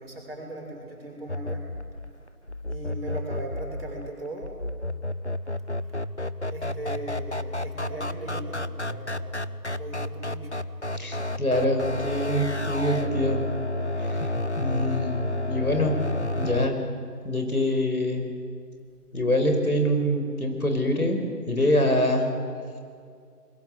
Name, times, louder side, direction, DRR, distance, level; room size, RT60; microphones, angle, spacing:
voice 1, 0.0-1.7 2.7-4.6 5.6-5.9 6.5-9.3 9.7-10.6 11.1-11.2, right 2 dB, 40° right, -1 dB, 6.5 m, -38 dB
sound 1, 1.3-16.7, left 1 dB, 45° left, 0.7 m, -31 dB
voice 2, 10.9-13.4 14.0-14.2 14.6-16.0 16.4-16.8 17.2-18.3 19.1-21.2 21.5-22.3, left 1 dB, 65° left, 4 dB, 5.3 m, -25 dB
28.0 x 21.5 x 8.0 m, 2.2 s
figure-of-eight pair, 175°, 47 cm